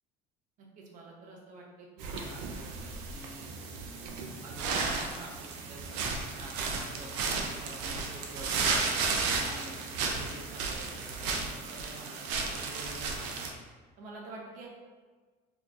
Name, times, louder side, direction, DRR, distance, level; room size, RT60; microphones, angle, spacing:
voice 1, 0.6-3.5 3.9-13.4 14.0-14.7, right 2 dB, 50° right, -1 dB, 0.8 m, -48 dB
sound 1, 2.0-13.5, right 4 dB, 85° right, 0.5 m, -34 dB
4.2 x 2.9 x 2.4 m, 1.4 s
cardioid pair, 165°, 18 cm